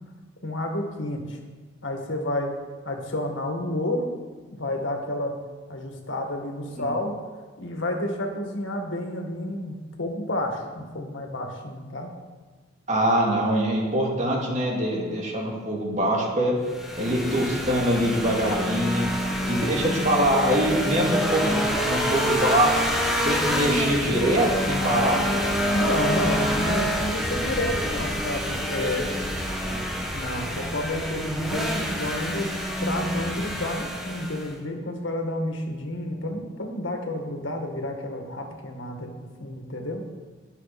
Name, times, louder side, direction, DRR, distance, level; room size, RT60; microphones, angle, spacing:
voice 1, 0.4-1.4 1.8-2.5 2.8-4.1 4.5-5.4 5.7-7.1 7.6-12.1 19.3-19.6 25.7-29.0 30.1-32.5 32.8-40.0, left 1 dB, 80° left, 2 dB, 2.1 m, -30 dB
voice 2, 12.9-16.5 17.0-19.1 19.5-22.8 23.2-25.2 29.6-29.8, right 1 dB, 40° right, -2 dB, 2.7 m, -23 dB
sound 1, 16.7-34.5, equal, ahead, 1.7 m, -27 dB
21.5 x 7.3 x 4.3 m, 1.4 s
head